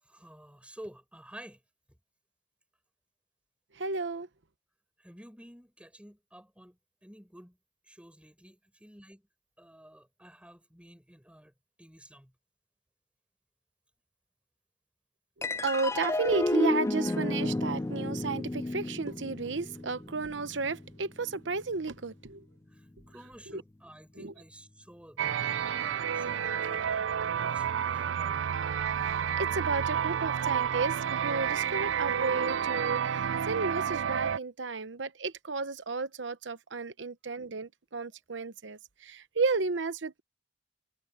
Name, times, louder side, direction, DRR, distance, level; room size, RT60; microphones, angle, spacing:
voice 1, 0.0-1.6 5.0-7.6 7.9-9.2 9.6-11.5 11.8-12.3 22.7-28.5, equal, 5° right, 4.9 m, -51 dB
voice 2, 3.8-4.3 15.4-22.4 23.5-23.6 24.2-24.3 29.0-40.2, right 4 dB, 70° right, 0.9 m, -33 dB
sound 1, 15.4-22.1, left 2 dB, 15° left, 0.4 m, -32 dB
sound 2, 25.2-34.4, right 8 dB, 85° right, 0.4 m, -30 dB
head